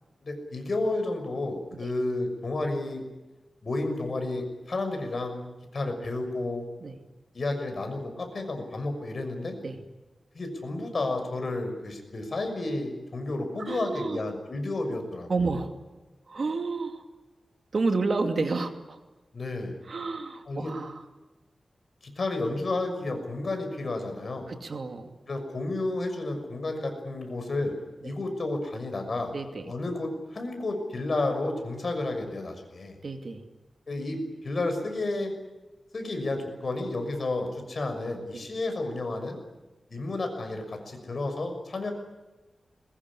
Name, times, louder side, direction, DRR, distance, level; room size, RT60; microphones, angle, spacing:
voice 1, 0.2-3.0 3.6-5.4 5.7-6.6 7.3-9.6 10.3-15.3 19.3-19.7 20.5-20.7 22.0-24.5 25.3-27.7 28.0-29.3 29.7-33.0 33.9-35.3 35.9-39.4 39.9-41.9, left 2 dB, 50° left, 5 dB, 6.3 m, -31 dB
voice 2, 13.6-14.2 15.3-15.7 16.3-17.0 17.7-19.0 19.8-21.0 24.5-25.1 28.0-28.1 29.3-29.7 33.0-33.4 38.3-38.5, right 3 dB, 55° right, 6 dB, 2.6 m, -30 dB
22.5 x 21.0 x 10.0 m, 1.1 s
wide cardioid pair, 110°, 0 cm